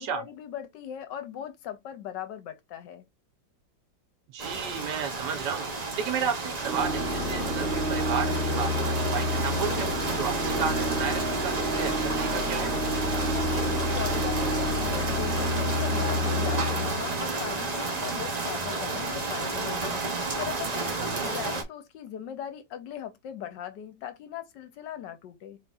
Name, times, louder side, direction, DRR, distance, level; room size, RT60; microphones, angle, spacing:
voice 1, 0.0-3.0 13.1-25.6, left 10 dB, 75° left, 1.3 m, -39 dB
voice 2, 4.3-9.9 10.2-12.7 21.0-21.3, right 7 dB, 70° right, 1.3 m, -33 dB
sound 1, 4.4-21.6, right 3 dB, 55° right, 0.4 m, -31 dB
Organ, 6.6-17.6, left 1 dB, 35° right, 1.4 m, -29 dB
4.2 x 3.8 x 2.4 m
omnidirectional pair, 2.0 m